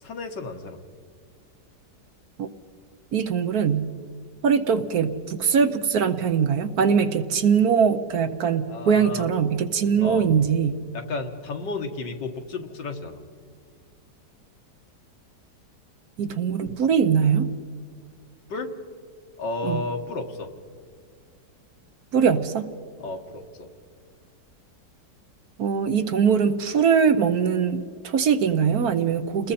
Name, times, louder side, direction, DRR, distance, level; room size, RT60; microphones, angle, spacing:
voice 1, 0.0-0.8 8.7-9.3 10.0-10.3 10.9-13.3 18.5-18.7 19.4-20.5 23.0-23.7, left 3 dB, 80° left, 5 dB, 2.1 m, -32 dB
voice 2, 3.1-3.9 4.4-10.8 16.2-17.5 19.6-19.8 22.1-22.7 25.6-29.5, right 7 dB, 60° right, 9 dB, 1.3 m, -22 dB
29.5 x 20.5 x 4.3 m, 2.1 s
omnidirectional pair, 1.9 m